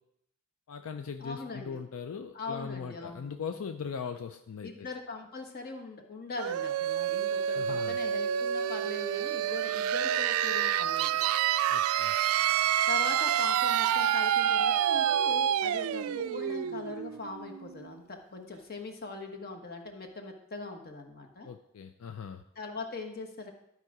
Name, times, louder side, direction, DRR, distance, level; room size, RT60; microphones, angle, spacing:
voice 1, 0.7-4.9 7.5-8.0 11.7-12.2 21.4-22.4, left 6 dB, 80° left, 8 dB, 0.4 m, -39 dB
voice 2, 1.2-1.8 2.3-3.3 4.6-11.2 12.9-21.5 22.5-23.5, left 3 dB, 45° left, 4 dB, 1.2 m, -41 dB
sound 1, 6.4-17.9, right 10 dB, 85° right, 0.3 m, -28 dB
12.0 x 4.9 x 4.8 m, 0.78 s
head